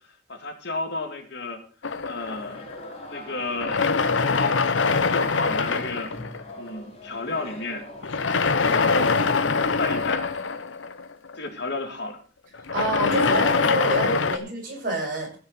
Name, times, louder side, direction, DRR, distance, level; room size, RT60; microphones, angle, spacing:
voice 1, 0.3-1.6 2.0-2.7 3.1-4.8 5.1-6.1 6.6-7.8 8.6-9.2 9.8-10.2 11.4-12.2, left 2 dB, 60° left, 5 dB, 2.3 m, -32 dB
sound 1, 1.8-3.1 3.5-6.7 8.0-11.5 12.5-14.4, left 4 dB, 85° left, 0.9 m, -23 dB
sound 2, 2.2-8.4, left 1 dB, 35° left, 3.4 m, -42 dB
voice 2, 12.7-15.4, right 2 dB, 50° right, -1 dB, 6.2 m, -28 dB
15.0 x 6.3 x 6.5 m, 0.41 s
head